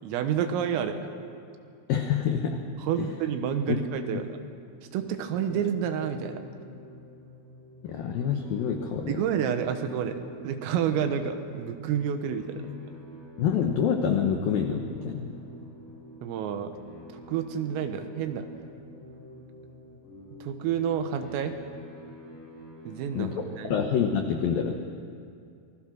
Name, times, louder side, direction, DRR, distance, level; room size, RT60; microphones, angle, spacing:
voice 1, 0.0-1.0 2.8-4.3 4.9-6.4 9.1-12.6 16.2-16.7 17.1-18.5 20.4-21.6 22.9-23.7, right 8 dB, 85° right, 7 dB, 4.0 m, -29 dB
voice 2, 1.9-2.6 2.9-3.1 3.7-3.8 4.1-4.2 7.8-9.2 13.4-15.4 23.1-24.7, left 7 dB, 90° left, 4 dB, 2.0 m, -27 dB
sound 1, 5.0-23.8, equal, 40° left, 6.2 m, -47 dB
27.5 x 20.0 x 6.3 m, 2.5 s
omnidirectional pair, 5.9 m